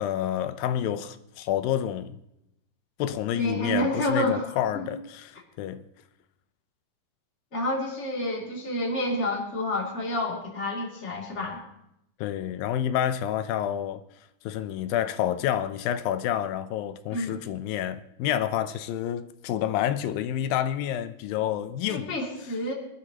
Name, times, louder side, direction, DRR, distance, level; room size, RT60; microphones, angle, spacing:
voice 1, 0.0-2.2 3.0-5.8 12.2-14.0 14.4-22.2, left 10 dB, 90° left, 2.5 m, -29 dB
voice 2, 3.3-4.9 7.5-11.6 17.1-17.4 21.9-22.7, left 1 dB, 20° left, 2.6 m, -29 dB
23.5 x 12.5 x 2.9 m
omnidirectional pair, 4.0 m